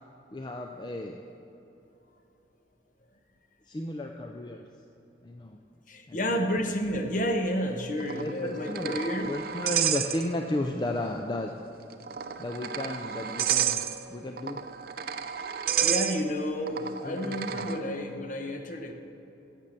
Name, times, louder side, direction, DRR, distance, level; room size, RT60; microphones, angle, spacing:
voice 1, 0.3-1.2 3.7-4.7 5.2-5.6 6.1-6.2 8.2-11.5 12.4-14.6 17.0-17.7, left 1 dB, 25° left, 3 dB, 0.4 m, -34 dB
voice 2, 5.9-9.3 15.8-18.9, equal, 45° left, 5 dB, 0.9 m, -30 dB
sound 1, 8.0-10.7 10.9-11.0 11.9-17.8, right 9 dB, 55° right, 0.4 m, -31 dB
11.0 x 7.5 x 6.6 m, 3.0 s
head